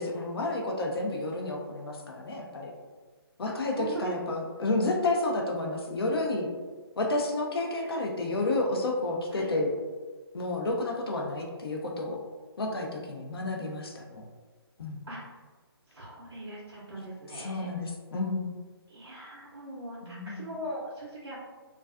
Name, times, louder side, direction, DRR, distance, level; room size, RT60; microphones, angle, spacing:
voice 1, 0.0-2.7 3.4-6.5 7.0-9.7 10.3-12.2 12.6-14.2 14.8-15.0 17.4-18.5 20.0-20.4, left 2 dB, 65° left, 0 dB, 0.5 m, -30 dB
voice 2, 3.5-4.1 7.7-7.9 9.3-9.6 11.3-11.5 15.0-15.4 15.9-17.7 18.9-21.4, right 1 dB, 80° right, -6 dB, 0.6 m, -41 dB
2.3 x 2.3 x 2.3 m, 1.4 s
figure-of-eight pair, 150°, 13 cm